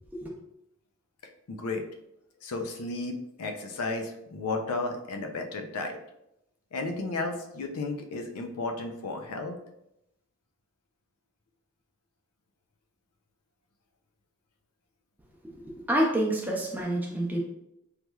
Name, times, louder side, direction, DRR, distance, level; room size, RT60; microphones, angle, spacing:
voice 1, 1.5-1.8 2.4-6.0 6.7-9.6, left 3 dB, 85° left, 5 dB, 0.5 m, -33 dB
voice 2, 15.5-17.4, right 1 dB, 10° right, -2 dB, 0.5 m, -28 dB
3.3 x 3.0 x 2.2 m, 0.82 s
head